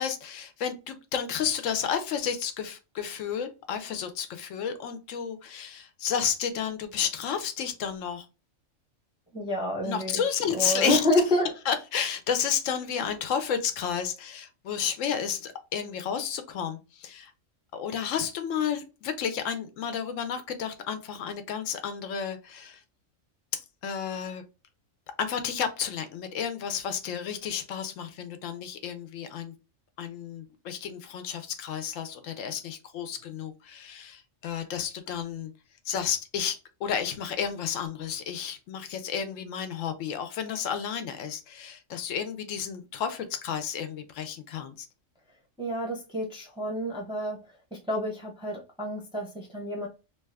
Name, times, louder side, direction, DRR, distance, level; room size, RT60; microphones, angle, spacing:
voice 1, 0.0-8.3 9.8-11.0 11.7-17.3 17.7-22.8 23.8-24.4 25.2-29.5 30.0-35.5 35.9-44.9, left 8 dB, 75° left, 0.9 m, -31 dB
voice 2, 9.3-10.2 10.5-11.5 45.6-47.4 47.7-49.9, left 1 dB, 5° right, 0.5 m, -28 dB
2.8 x 2.3 x 3.3 m
omnidirectional pair, 1.4 m